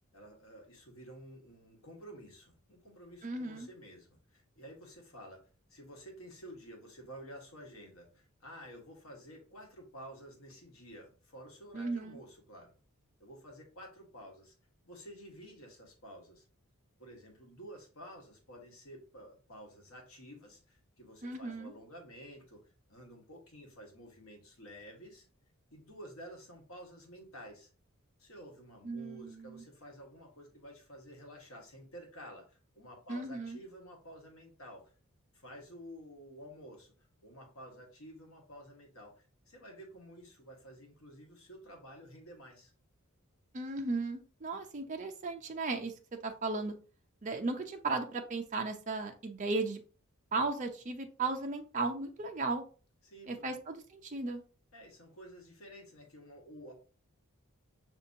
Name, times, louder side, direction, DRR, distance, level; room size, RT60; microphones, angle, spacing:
voice 1, 0.1-12.7 13.2-14.5 14.8-16.5 17.0-25.3 25.7-27.7 28.2-34.9 35.3-36.9 37.2-42.7 53.0-53.6 54.7-56.8, equal, 75° left, 1 dB, 1.4 m, -51 dB
voice 2, 3.2-3.7 11.7-12.2 21.2-21.7 28.8-29.6 33.1-33.6 43.5-45.9 46.2-46.8 47.2-49.8 50.3-52.6 53.3-54.4, right 3 dB, 35° right, 4 dB, 0.5 m, -36 dB
6.0 x 2.7 x 2.7 m, 0.37 s
head